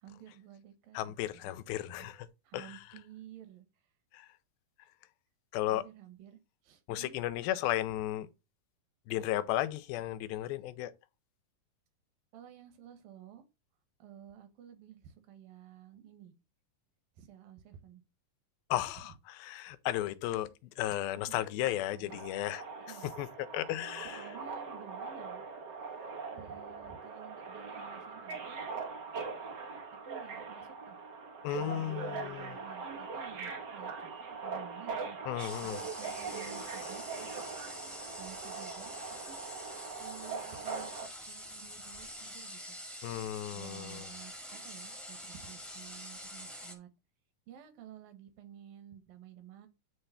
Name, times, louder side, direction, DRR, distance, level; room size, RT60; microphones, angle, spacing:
voice 1, 0.0-1.6 1.9-2.1 2.4-3.7 5.7-7.1 7.6-7.7 12.3-13.4 14.0-16.3 17.2-18.0 18.8-18.9 21.2-21.4 21.9-22.2 22.9-23.1 24.0-25.5 26.3-28.7 30.0-31.0 31.6-37.5 38.2-39.0 39.3-39.4 40.0-42.8 43.5-46.9 47.5-49.7, right 10 dB, 70° right, 3.0 m, -53 dB
voice 2, 0.9-2.3 2.5-2.8 4.1-4.3 5.5-5.9 6.9-8.3 9.1-10.9 18.7-20.5 20.8-22.6 23.2-24.3 31.4-32.6 35.3-35.8 43.0-44.1, left 14 dB, 90° left, 2.5 m, -34 dB
Subway metro underground, 22.1-41.1, right 5 dB, 90° right, 0.9 m, -41 dB
sound 1, 35.4-46.7, equal, ahead, 0.7 m, -46 dB
9.5 x 3.4 x 5.6 m
omnidirectional pair, 4.2 m